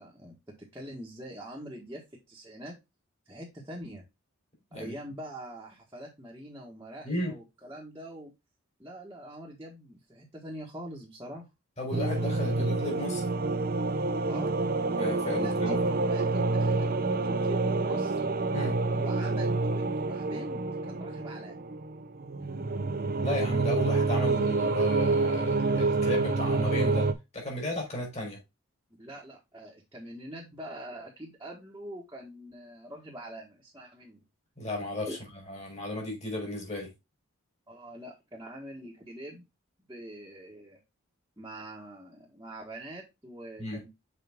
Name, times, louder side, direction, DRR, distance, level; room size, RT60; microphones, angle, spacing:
voice 1, 0.0-2.0 2.3-2.7 3.3-4.0 4.7-8.3 8.8-11.4 14.3-14.6 15.4-18.3 18.9-21.6 29.0-34.2 35.1-35.2 37.7-39.4 39.9-40.8 41.4-43.9, right 1 dB, 15° right, 1.5 m, -43 dB
voice 2, 11.8-13.2 15.0-15.8 18.5-18.8 23.2-27.1 27.3-28.4 34.6-35.1 35.5-36.9 43.6-43.8, left 1 dB, 30° left, 3.9 m, -34 dB
sound 1, 11.9-27.1, right 3 dB, 45° right, 0.7 m, -28 dB
6.7 x 5.0 x 3.5 m
head